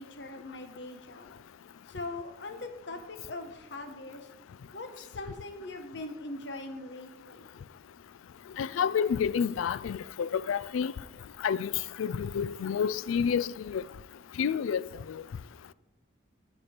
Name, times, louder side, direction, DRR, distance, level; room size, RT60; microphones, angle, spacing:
voice 1, 0.0-1.3 1.9-4.3 4.7-7.5, left 2 dB, 60° left, 1.0 m, -41 dB
voice 2, 8.6-10.9 11.4-11.7 12.0-13.8 14.4-15.2, left 7 dB, 90° left, 0.3 m, -29 dB
13.0 x 5.0 x 4.4 m
head